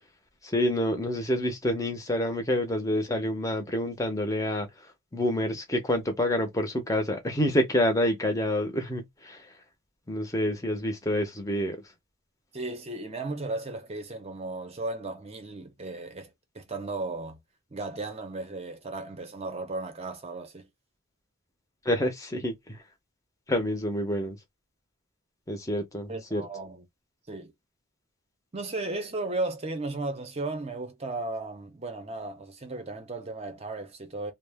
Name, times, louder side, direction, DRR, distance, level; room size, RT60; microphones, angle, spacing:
voice 1, 0.4-4.7 5.1-9.5 10.1-11.8 21.8-22.8 23.5-24.4 25.5-26.4, left 1 dB, 15° left, 0.6 m, -27 dB
voice 2, 12.5-17.4 17.7-20.7 26.1-26.8 27.3-27.5 28.5-34.3, right 2 dB, 30° right, 0.6 m, -35 dB
2.3 x 2.1 x 3.3 m
head